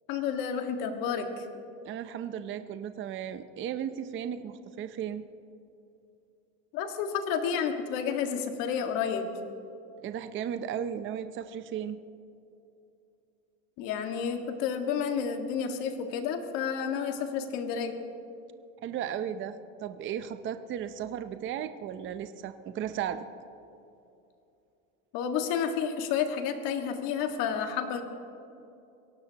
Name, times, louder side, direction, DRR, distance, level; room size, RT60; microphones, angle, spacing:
voice 1, 0.1-1.5 6.7-9.3 13.8-18.0 25.1-28.0, left 7 dB, 65° left, 5 dB, 1.8 m, -30 dB
voice 2, 1.8-5.3 10.0-12.0 18.8-23.2, right 9 dB, 35° right, 10 dB, 0.6 m, -35 dB
23.0 x 17.5 x 2.9 m, 2.7 s
supercardioid pair, 135°, 37 cm